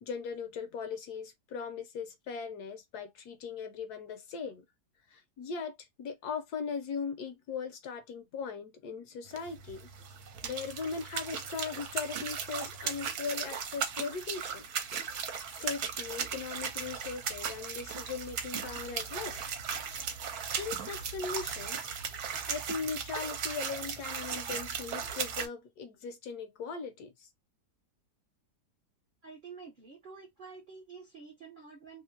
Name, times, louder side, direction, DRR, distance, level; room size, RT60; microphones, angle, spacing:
voice 1, 0.0-4.6 5.1-9.9 10.4-14.7 15.6-19.4 20.6-21.9 22.5-27.3, left 5 dB, 70° left, 1.2 m, -39 dB
sound 1, 9.3-25.5, right 7 dB, 65° right, 1.2 m, -37 dB
voice 2, 29.2-32.0, right 5 dB, 40° right, 0.8 m, -49 dB
3.0 x 2.7 x 2.6 m
omnidirectional pair, 1.8 m